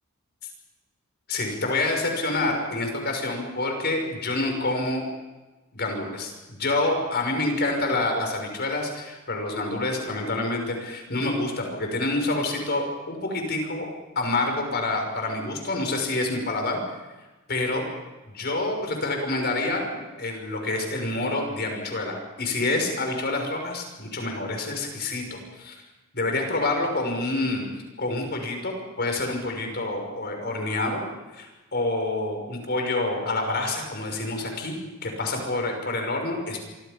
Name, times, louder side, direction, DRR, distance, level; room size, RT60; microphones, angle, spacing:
voice 1, 1.3-5.0 5.7-13.9 14.1-16.8 17.5-17.8 18.3-19.8 20.2-25.7 26.1-27.7 28.0-31.0 31.3-34.7 35.0-36.6, left 2 dB, 50° left, 3 dB, 6.2 m, -27 dB
27.0 x 25.5 x 5.4 m, 1.2 s
head